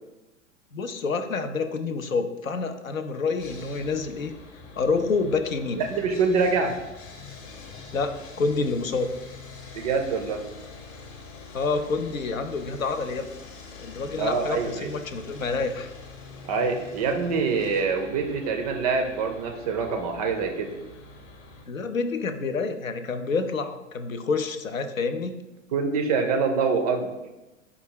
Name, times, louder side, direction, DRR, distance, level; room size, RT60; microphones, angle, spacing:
voice 1, 0.7-4.3 4.8-5.8 7.9-9.1 11.5-13.3 13.8-15.9 21.7-25.4, left 4 dB, 85° left, 9 dB, 0.5 m, -28 dB
Sawing, 3.4-21.7, left 3 dB, 40° left, 0.8 m, -44 dB
voice 2, 5.8-6.7 9.7-10.4 14.2-14.9 16.4-20.7 25.7-27.1, right 4 dB, 30° right, 4 dB, 0.4 m, -25 dB
4.6 x 2.3 x 4.6 m, 1.0 s
figure-of-eight pair, 95°, 39 cm